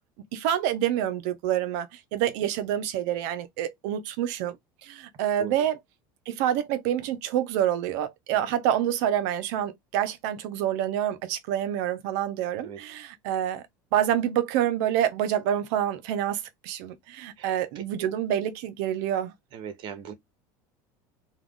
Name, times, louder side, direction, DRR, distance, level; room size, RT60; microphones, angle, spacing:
voice 1, 0.3-4.6 4.8-5.8 6.3-13.7 13.9-19.3, right 11 dB, 70° right, 0.6 m, -27 dB
voice 2, 19.5-20.1, right 8 dB, 55° right, 0.9 m, -39 dB
2.3 x 2.3 x 3.5 m
supercardioid pair, 95°, 10 cm